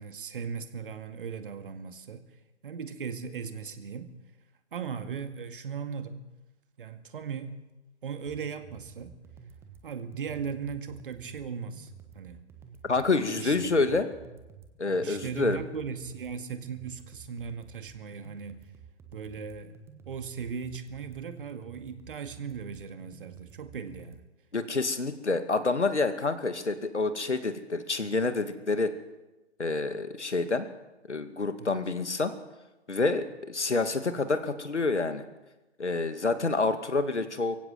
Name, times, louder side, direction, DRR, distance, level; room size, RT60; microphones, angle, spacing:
voice 1, 0.0-2.2 2.6-4.1 4.7-6.3 6.8-7.6 8.0-9.2 9.8-12.4 13.4-13.9 15.0-18.6 19.1-19.7 20.1-24.2 31.6-31.8, right 6 dB, 45° right, 8 dB, 2.2 m, -38 dB
sound 1, 8.2-24.2, right 7 dB, 5° right, 1.2 m, -51 dB
voice 2, 12.9-14.1 14.8-15.6 24.5-28.9 29.6-30.7 31.1-32.3 32.9-35.2 35.8-37.6, left 3 dB, 70° left, 9 dB, 2.4 m, -28 dB
23.5 x 16.0 x 7.8 m, 1.0 s
figure-of-eight pair, 135°, 35 cm